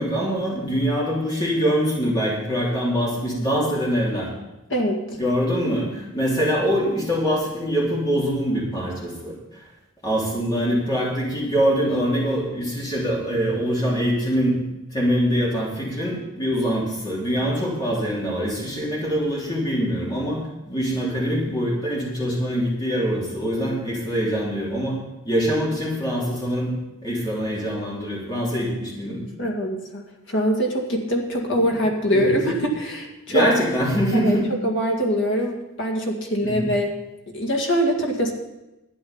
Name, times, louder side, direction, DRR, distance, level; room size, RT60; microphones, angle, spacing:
voice 1, 0.0-4.3 5.1-9.3 10.0-14.6 14.9-20.4 20.7-25.0 25.2-26.7 27.0-29.2 31.6-31.7 32.1-32.6 33.3-34.4 36.4-36.7, equal, 20° left, -5 dB, 3.3 m, -24 dB
voice 2, 4.7-5.0 29.4-33.5 34.1-34.4 34.6-36.9 37.3-38.3, equal, 55° left, 1 dB, 1.9 m, -23 dB
12.0 x 9.6 x 5.6 m, 0.98 s
head